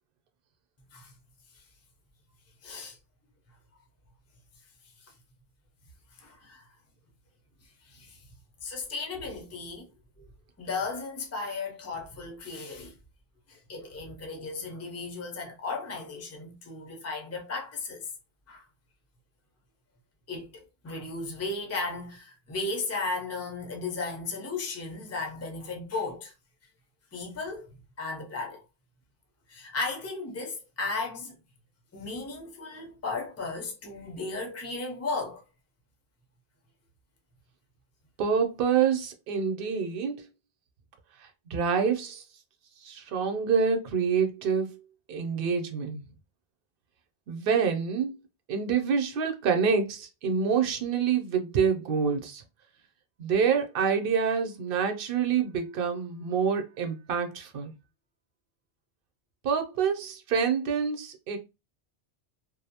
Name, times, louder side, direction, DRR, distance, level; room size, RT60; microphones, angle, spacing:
voice 1, 2.6-3.0 6.2-6.7 7.8-8.2 8.6-9.9 10.2-10.3 10.6-12.9 13.5-18.1 18.5-18.6 20.3-26.3 27.1-27.7 28.0-28.6 29.5-31.3 31.9-35.4, left 3 dB, 20° left, 0.5 m, -35 dB
voice 2, 38.2-40.3 41.2-42.2 42.8-44.8 45.1-46.0 47.3-48.1 48.5-52.4 53.2-57.7 59.4-61.4, right 6 dB, 60° right, 0.7 m, -27 dB
2.6 x 2.0 x 2.7 m
omnidirectional pair, 1.1 m